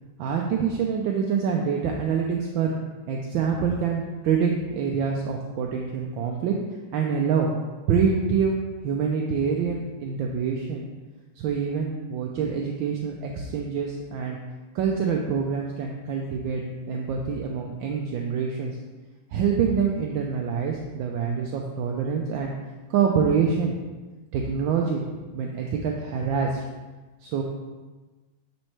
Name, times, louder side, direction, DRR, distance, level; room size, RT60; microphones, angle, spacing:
voice 1, 0.2-2.7 3.1-6.5 6.9-7.5 7.9-10.8 11.4-14.4 14.7-18.8 19.3-22.5 22.9-23.8 24.3-25.0 25.3-26.6 27.2-27.4, right 6 dB, 75° right, 0 dB, 1.3 m, -26 dB
9.1 x 4.3 x 3.2 m, 1.2 s
omnidirectional pair, 2.3 m